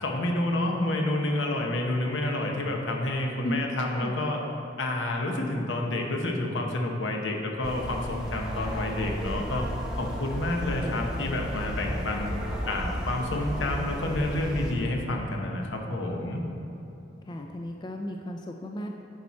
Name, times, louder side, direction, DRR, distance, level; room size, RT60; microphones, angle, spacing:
voice 1, 0.0-4.4 4.8-9.7 10.0-12.3 12.7-16.4, left 1 dB, 75° left, 1 dB, 0.9 m, -29 dB
sound 1, 7.6-14.7, equal, 5° right, 0.9 m, -34 dB
voice 2, 17.3-18.9, left 1 dB, 25° left, 2 dB, 0.3 m, -34 dB
10.5 x 4.3 x 4.2 m, 3.0 s
head